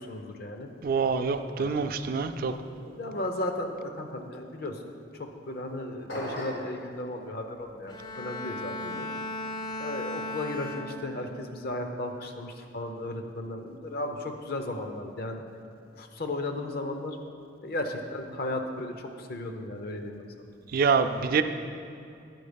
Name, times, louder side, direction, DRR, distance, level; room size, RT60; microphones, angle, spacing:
voice 1, 0.0-0.7 1.6-1.9 2.6-2.7 3.0-9.1 9.8-15.4 16.0-17.2 17.6-20.3, left 1 dB, 55° left, 5 dB, 0.7 m, -35 dB
voice 2, 0.8-2.5 20.7-21.4, right 5 dB, 50° right, 8 dB, 0.4 m, -25 dB
sound 1, 6.1-6.7, equal, 85° left, 1.9 m, -35 dB
Bowed string instrument, 7.9-11.4 11.9-12.3, left 1 dB, 25° left, 0.3 m, -37 dB
9.4 x 4.6 x 5.1 m, 2.5 s
head